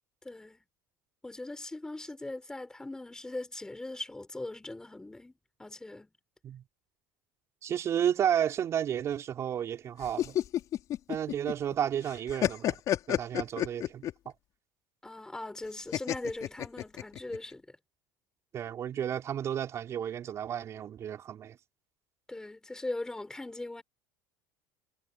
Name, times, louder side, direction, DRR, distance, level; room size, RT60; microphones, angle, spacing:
voice 1, 0.2-0.6 1.2-5.3 5.6-6.1 15.0-17.7 22.3-23.8, left 2 dB, 5° left, 6.1 m, -40 dB
voice 2, 7.6-10.4 11.1-12.8 13.1-14.0 18.5-21.6, right 9 dB, 35° right, 5.1 m, -32 dB
sound 1, 10.0-11.7 12.1-14.3 15.9-17.4, left 12 dB, 45° left, 5.8 m, -30 dB
cardioid pair, 140°, 8 cm